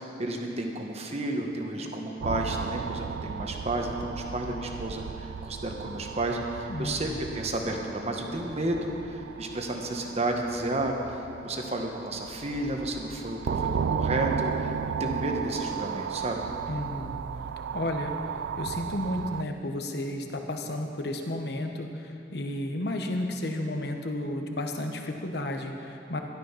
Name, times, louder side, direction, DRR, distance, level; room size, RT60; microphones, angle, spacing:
voice 1, 0.0-10.9 11.4-14.7 15.0-16.5, right 1 dB, 35° right, 2 dB, 1.3 m, -32 dB
sound 1, 2.2-19.4, right 7 dB, 80° right, 0.3 m, -35 dB
voice 2, 6.7-7.3 16.7-17.3 17.7-18.1 18.6-26.2, left 1 dB, 60° left, 4 dB, 1.2 m, -32 dB
13.0 x 12.0 x 5.8 m, 2.9 s
head